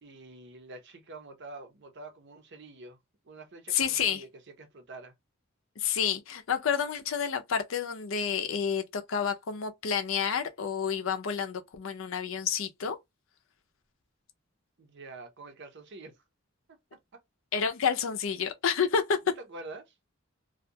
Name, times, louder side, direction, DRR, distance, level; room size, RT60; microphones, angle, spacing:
voice 1, 0.0-3.0 3.2-5.1 14.8-16.2 16.7-16.8 17.1-17.2 19.4-19.9, right 2 dB, 60° right, 0.7 m, -46 dB
voice 2, 3.7-4.2 5.8-13.0 17.5-19.2, left 7 dB, 70° left, 0.5 m, -29 dB
2.4 x 2.2 x 2.7 m
head